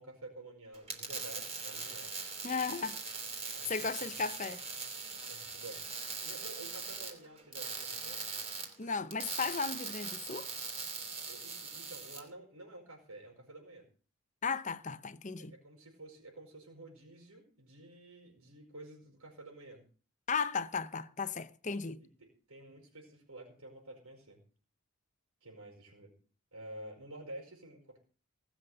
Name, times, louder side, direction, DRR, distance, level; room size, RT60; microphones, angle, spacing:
voice 1, 0.0-2.1 3.5-4.1 5.3-8.2 11.2-13.9 15.4-19.8 22.0-24.4 25.4-26.1 26.5-28.0, right 1 dB, 75° right, 5.6 m, -50 dB
sound 1, 0.7-12.2, right 4 dB, 30° right, 3.7 m, -41 dB
voice 2, 2.4-3.0 3.4-4.6 8.8-10.5 14.4-15.5 20.3-22.0, left 5 dB, 35° left, 0.7 m, -35 dB
19.0 x 7.3 x 8.0 m
head